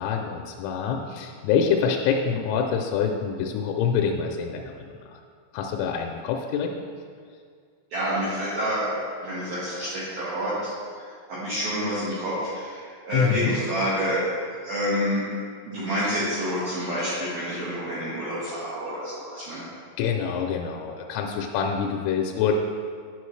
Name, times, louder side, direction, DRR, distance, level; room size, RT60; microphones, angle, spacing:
voice 1, 0.0-4.9 5.5-6.7 13.1-13.5 19.4-19.5 20.0-22.5, left 7 dB, 85° left, 2 dB, 2.9 m, -26 dB
voice 2, 7.9-9.0 9.2-15.3 15.7-19.6, equal, 65° right, -11 dB, 2.7 m, -28 dB
10.0 x 6.0 x 3.2 m, 2.1 s
omnidirectional pair, 5.8 m